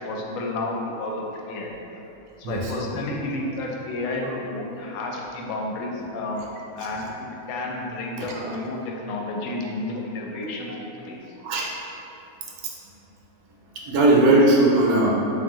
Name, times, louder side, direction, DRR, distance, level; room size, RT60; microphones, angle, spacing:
voice 1, 0.0-1.7 2.4-6.4 6.8-11.3, left 2 dB, 70° left, -1 dB, 0.9 m, -31 dB
voice 2, 8.2-8.6 11.4-11.7 13.8-15.1, right 2 dB, 80° right, -2 dB, 1.0 m, -19 dB
3.6 x 2.5 x 3.5 m, 3.0 s
omnidirectional pair, 1.6 m